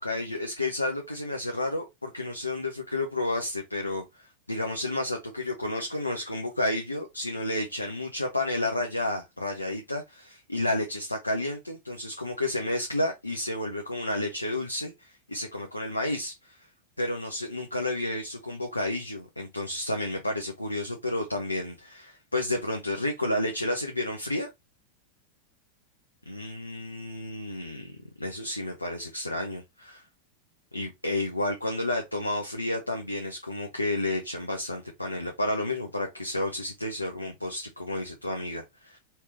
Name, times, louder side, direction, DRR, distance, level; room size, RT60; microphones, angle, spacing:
voice 1, 0.0-4.0 4.5-16.6 17.0-24.5 26.3-30.0 30.7-39.0, left 1 dB, 85° left, 0.7 m, -31 dB
4.4 x 3.5 x 2.8 m
figure-of-eight pair, 90°, 0 cm